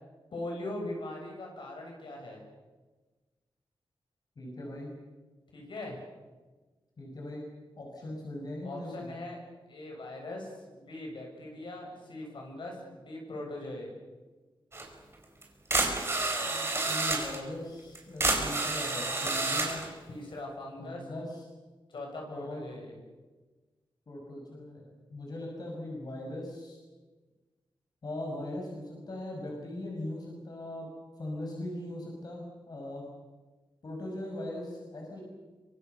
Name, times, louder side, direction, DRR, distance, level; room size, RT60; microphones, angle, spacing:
voice 1, 0.3-2.5 5.5-6.0 8.0-8.1 8.6-9.4 9.7-13.9 20.1-21.0 21.9-23.0, left 1 dB, 65° left, 0 dB, 7.4 m, -40 dB
voice 2, 4.4-4.9 7.0-7.4 7.8-9.1 16.2-19.8 20.8-21.4 22.3-22.6 24.1-26.8 28.0-30.9 31.2-33.0 33.8-35.2, left 1 dB, 50° left, -1 dB, 6.4 m, -40 dB
sound 1, 14.7-14.9 15.4-15.5 15.7-17.4 17.9-19.9, right 2 dB, 30° right, 4.3 m, -29 dB
26.5 x 24.5 x 7.0 m, 1.3 s
wide cardioid pair, 145°, 9 cm